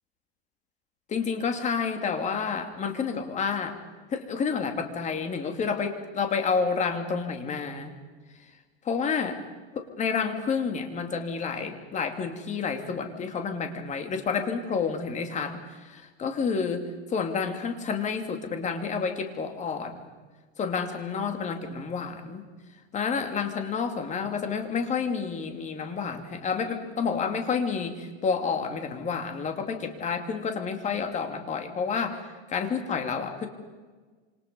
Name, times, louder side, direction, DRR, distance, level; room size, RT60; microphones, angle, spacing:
voice 1, 1.1-3.8 4.1-7.9 8.3-8.5 8.8-9.4 9.7-20.1 20.6-22.4 22.9-33.5, left 5 dB, 20° left, 6 dB, 2.9 m, -29 dB
27.5 x 27.0 x 5.5 m, 1.4 s
supercardioid pair, 145°, 33 cm